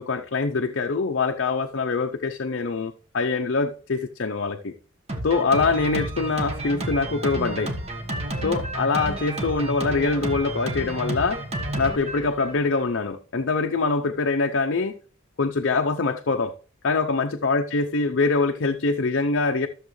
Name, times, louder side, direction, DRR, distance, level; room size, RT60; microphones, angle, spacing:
voice 1, 0.0-4.7 5.2-7.7 8.4-11.4 11.8-14.9 15.4-16.5 16.8-19.7, left 3 dB, 55° left, 0.6 m, -24 dB
Drum kit, 5.1-12.9, right 1 dB, 30° right, 1.3 m, -31 dB
13.0 x 7.1 x 3.1 m
head